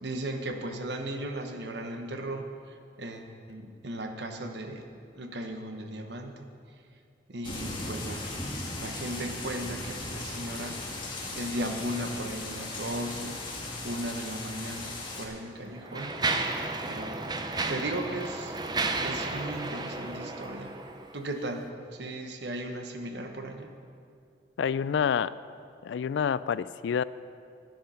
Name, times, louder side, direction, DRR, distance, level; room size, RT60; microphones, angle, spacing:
voice 1, 0.0-6.5 7.3-10.8 11.3-13.4 13.8-16.2 16.8-17.2 17.6-18.6 19.0-20.8 21.1-23.7, right 1 dB, 65° right, 5 dB, 1.0 m, -36 dB
sound 1, 7.4-15.3, left 2 dB, 25° left, 1.6 m, -37 dB
Mechanisms, 14.6-14.7 15.4-21.2, right 3 dB, 25° right, 0.6 m, -33 dB
voice 2, 24.6-25.3 25.8-27.0, left 7 dB, 75° left, 17 dB, 0.3 m, -28 dB
10.5 x 10.5 x 5.6 m, 2.4 s
head